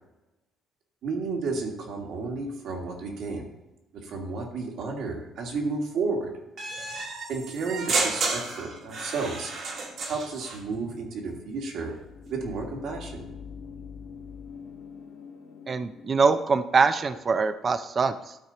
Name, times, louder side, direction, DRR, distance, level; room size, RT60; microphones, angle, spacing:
voice 1, 1.0-3.4 3.9-6.3 7.3-9.5 10.1-12.0 12.3-13.3, right 4 dB, 60° right, 1 dB, 1.7 m, -32 dB
sound 1, 6.6-10.6, right 3 dB, 45° right, 1.4 m, -31 dB
sound 2, 8.4-17.2, left 6 dB, 60° left, 1.5 m, -46 dB
voice 2, 15.7-18.4, right 4 dB, 25° right, 11 dB, 0.4 m, -23 dB
12.5 x 4.5 x 4.0 m, 0.99 s
cardioid pair, 175°, 0 cm